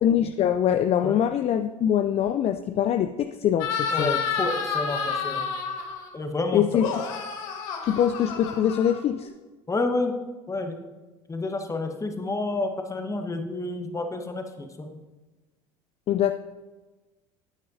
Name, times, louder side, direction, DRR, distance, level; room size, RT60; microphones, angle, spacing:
voice 1, 0.0-4.1 6.5-6.9 7.8-9.3 16.1-16.3, left 9 dB, 35° left, 9 dB, 0.4 m, -23 dB
sound 1, 3.6-6.1 6.7-9.3, left 6 dB, 65° left, 1.5 m, -30 dB
voice 2, 3.9-5.5 6.1-6.8 9.7-10.1 10.5-10.7 11.3-14.9, left 2 dB, 15° left, 5 dB, 1.3 m, -29 dB
12.5 x 9.3 x 2.7 m, 1.2 s
figure-of-eight pair, 70°, 18 cm